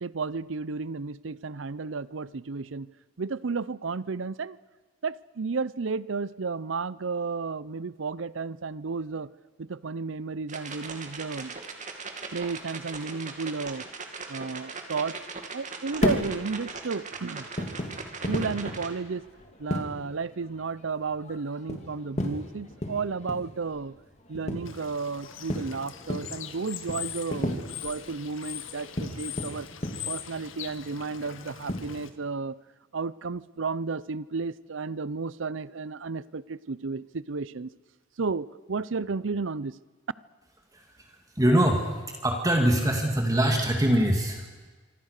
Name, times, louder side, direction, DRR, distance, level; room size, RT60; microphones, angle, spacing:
voice 1, 0.0-2.9 3.2-4.6 5.0-9.3 9.6-11.5 12.3-13.9 14.3-15.2 15.5-17.5 18.0-19.2 19.6-23.9 24.3-29.7 30.0-32.6 32.9-37.7 38.2-39.8, right 4 dB, 70° right, 0.6 m, -33 dB
sound 1, 10.5-18.9, right 4 dB, 40° right, 2.6 m, -40 dB
sound 2, 15.9-32.0, left 1 dB, 35° left, 2.9 m, -35 dB
Bird / Water, 24.6-32.1, left 10 dB, 80° left, 1.6 m, -41 dB
voice 2, 40.7-41.9 42.2-44.7, right 1 dB, 20° right, 2.3 m, -24 dB
25.5 x 25.0 x 6.6 m
head